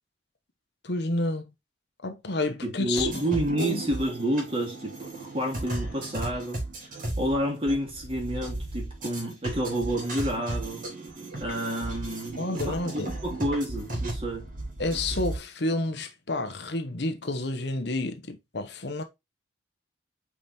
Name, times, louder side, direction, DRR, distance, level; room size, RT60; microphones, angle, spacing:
voice 1, 0.8-1.4 2.0-3.1 3.5-3.8 12.4-13.2 14.8-19.0, left 2 dB, 60° left, 1.0 m, -30 dB
voice 2, 2.6-6.6 7.2-10.9 11.4-14.5, right 1 dB, 30° right, 2.9 m, -29 dB
sound 1, 2.9-15.4, right 2 dB, 50° right, 3.3 m, -35 dB
5.5 x 4.9 x 4.2 m
head